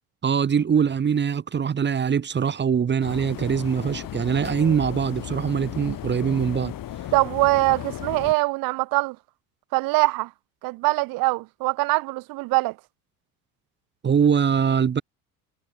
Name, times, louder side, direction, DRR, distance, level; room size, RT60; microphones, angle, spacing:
voice 1, 0.2-6.7 14.0-15.0, right 7 dB, 25° right, 1.0 m, -23 dB
sound 1, 3.0-8.3, left 12 dB, 45° left, 3.2 m, -35 dB
voice 2, 7.1-9.2 9.7-10.3 10.6-12.8, right 23 dB, 50° right, 0.7 m, -23 dB
figure-of-eight pair, 60°, 45 cm